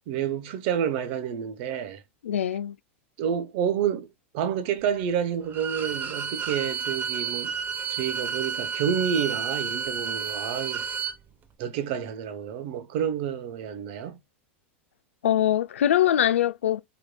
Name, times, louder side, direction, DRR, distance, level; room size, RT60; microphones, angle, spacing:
voice 1, 0.1-2.0 3.2-4.1 4.3-7.5 7.9-10.9 11.6-14.2, right 8 dB, 60° right, 0.9 m, -29 dB
voice 2, 2.2-2.7 15.2-16.8, left 11 dB, 85° left, 0.4 m, -22 dB
Bowed string instrument, 5.5-11.2, right 6 dB, 30° right, 0.8 m, -31 dB
4.7 x 2.8 x 2.3 m
hypercardioid pair, 105°, 7 cm